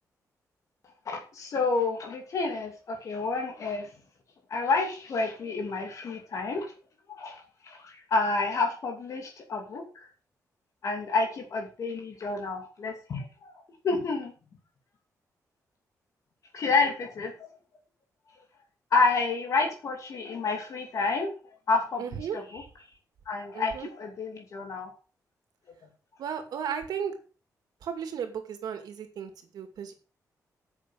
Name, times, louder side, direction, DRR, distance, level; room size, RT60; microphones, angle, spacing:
voice 1, 1.1-3.9 4.5-6.7 7.1-7.4 7.7-9.8 10.8-14.3 16.5-17.3 18.9-21.3 21.7-22.6 23.3-24.9, left 3 dB, 55° left, 2 dB, 2.7 m, -29 dB
voice 2, 22.0-22.4 23.5-23.9 26.2-27.1 27.8-29.9, right 7 dB, 90° right, 7 dB, 2.4 m, -34 dB
10.0 x 7.5 x 6.4 m, 0.36 s
wide cardioid pair, 155°, 7 cm